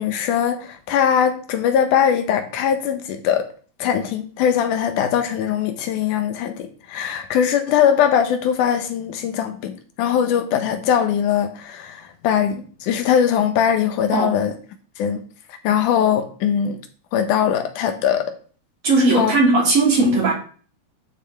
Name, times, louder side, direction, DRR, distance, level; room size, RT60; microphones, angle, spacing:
voice 1, 0.0-3.5 3.8-14.5 15.0-15.2 15.6-16.8 17.1-18.3 19.2-19.3, left 8 dB, 85° left, 2.5 m, -21 dB
voice 2, 18.8-20.3, right 2 dB, 45° right, 4.0 m, -17 dB
11.5 x 6.1 x 3.5 m
omnidirectional pair, 3.6 m